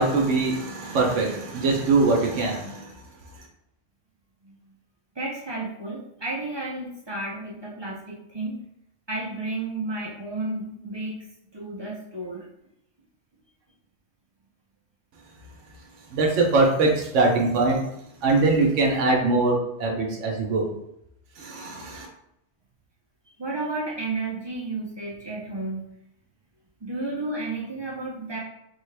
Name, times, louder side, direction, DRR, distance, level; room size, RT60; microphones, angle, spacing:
voice 1, 0.0-2.9 16.1-17.8 18.2-20.7 21.4-22.1, right 3 dB, 75° right, 0 dB, 1.0 m, -22 dB
voice 2, 5.2-8.6 9.1-11.3 11.5-12.5 23.4-25.8 26.8-28.4, right 2 dB, 35° right, -4 dB, 0.4 m, -32 dB
3.5 x 2.2 x 3.2 m, 0.79 s
omnidirectional pair, 1.3 m